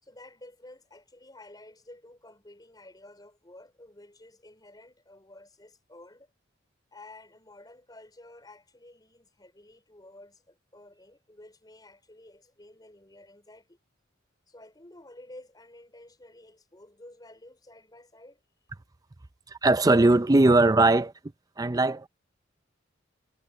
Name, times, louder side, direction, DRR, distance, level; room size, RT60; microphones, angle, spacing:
voice 1, 0.0-6.3 6.9-13.8 14.5-18.4, left 1 dB, 20° left, 4.7 m, -51 dB
voice 2, 19.5-21.1 21.6-22.1, right 2 dB, 20° right, 0.5 m, -20 dB
head